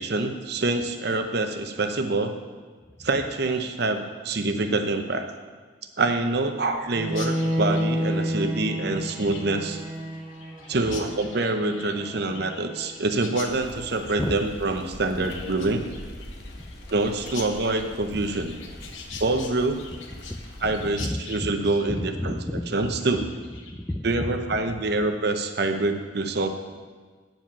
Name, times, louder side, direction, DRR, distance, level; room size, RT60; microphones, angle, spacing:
voice 1, 0.0-2.4 3.0-5.3 6.0-9.8 10.7-15.8 16.9-18.6 19.2-19.8 20.6-22.4 22.7-23.2 24.0-26.5, right 2 dB, 55° right, 6 dB, 0.8 m, -26 dB
Bowed string instrument, 6.9-12.9, equal, 5° right, 2.0 m, -30 dB
Chirp tweet, 7.1-24.0, left 5 dB, 80° left, 1.0 m, -44 dB
sound 1, 13.4-21.0, left 1 dB, 55° left, 1.2 m, -43 dB
voice 2, 18.9-19.2 19.9-20.4 20.8-21.6 21.9-23.3 23.6-24.4 24.7-24.8, left 1 dB, 10° left, 5 dB, 0.5 m, -33 dB
9.2 x 7.5 x 5.5 m, 1.5 s
head